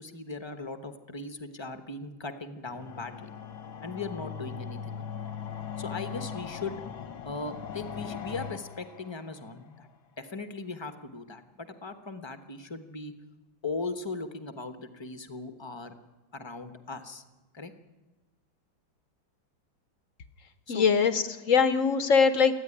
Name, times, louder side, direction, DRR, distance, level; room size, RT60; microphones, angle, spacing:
voice 1, 0.0-3.3 3.8-5.0 5.8-6.8 7.2-9.9 10.2-13.1 13.6-16.0 16.3-17.2 17.5-17.7 20.7-20.9, left 3 dB, 20° left, 9 dB, 0.7 m, -38 dB
sound 1, 2.7-9.7, left 7 dB, 80° left, 1.9 m, -39 dB
voice 2, 20.7-22.6, left 5 dB, 50° left, 11 dB, 1.0 m, -22 dB
28.0 x 9.9 x 9.9 m, 1.1 s
omnidirectional pair, 2.2 m